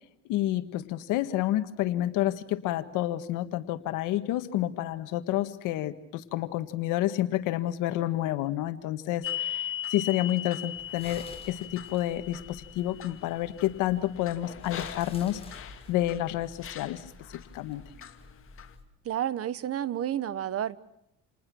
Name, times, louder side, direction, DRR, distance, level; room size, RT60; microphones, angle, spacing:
voice 1, 0.3-17.1 17.3-17.8, left 14 dB, 85° left, 10 dB, 1.6 m, -29 dB
sound 1, 9.2-16.2 16.6-17.4 18.0-18.7, left 10 dB, 45° left, 2.3 m, -39 dB
sound 2, 10.7-18.8, left 3 dB, 20° left, 5.9 m, -50 dB
voice 2, 19.0-21.0, right 10 dB, 50° right, 17 dB, 1.1 m, -31 dB
28.5 x 20.0 x 6.2 m, 0.83 s
cardioid pair, 100°, 30 cm